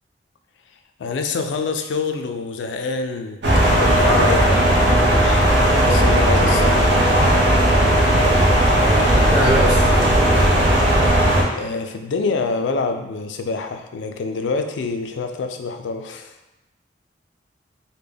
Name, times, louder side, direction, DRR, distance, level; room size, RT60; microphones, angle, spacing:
voice 1, 1.0-3.4 3.7-4.8 5.9-6.9 11.5-16.3, left 4 dB, 90° left, 6 dB, 0.3 m, -26 dB
sound 1, 3.4-11.4, right 1 dB, 75° right, 0.6 m, -16 dB
voice 2, 8.7-10.4, equal, 5° left, -9 dB, 0.5 m, -24 dB
3.4 x 2.1 x 3.4 m, 1.0 s
head